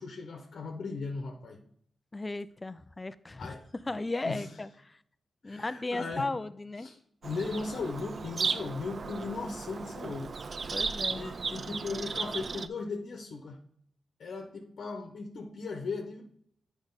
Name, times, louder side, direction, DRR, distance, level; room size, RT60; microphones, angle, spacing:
voice 1, 0.0-1.6 3.4-4.5 5.4-6.3 6.8-10.4 11.1-13.6 14.2-16.2, left 4 dB, 70° left, 3 dB, 1.0 m, -37 dB
voice 2, 2.1-3.5 3.9-5.0 5.4-6.9 10.7-11.3, left 2 dB, 25° left, 15 dB, 0.5 m, -36 dB
Bird vocalization bird call bird song, 7.2-12.7, right 4 dB, 50° right, 0.4 m, -35 dB
8.6 x 4.9 x 4.0 m, 0.66 s
cardioid pair, 70°, 0 cm